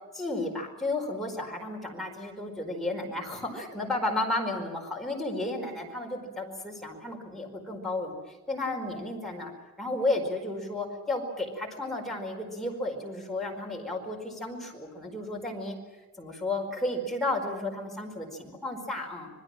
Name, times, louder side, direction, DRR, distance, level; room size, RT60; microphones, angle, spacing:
voice 1, 0.1-8.2 8.5-9.5 9.8-15.8 16.2-19.3, left 2 dB, ahead, -1 dB, 4.7 m, -33 dB
27.0 x 21.5 x 7.6 m, 1.3 s
head